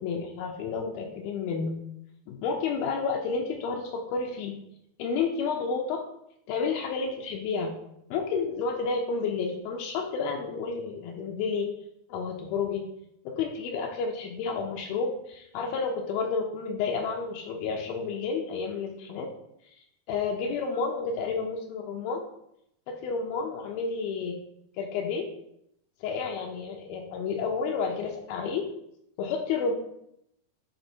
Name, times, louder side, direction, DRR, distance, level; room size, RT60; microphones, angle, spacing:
voice 1, 0.0-1.8 2.3-4.6 5.0-6.0 6.5-7.7 8.1-11.7 12.1-12.9 13.3-19.3 20.1-22.2 22.9-24.4 24.8-25.3 26.0-28.7 29.2-29.7, left 5 dB, 80° left, 2 dB, 2.4 m, -30 dB
7.9 x 3.4 x 4.4 m, 0.77 s
omnidirectional pair, 4.4 m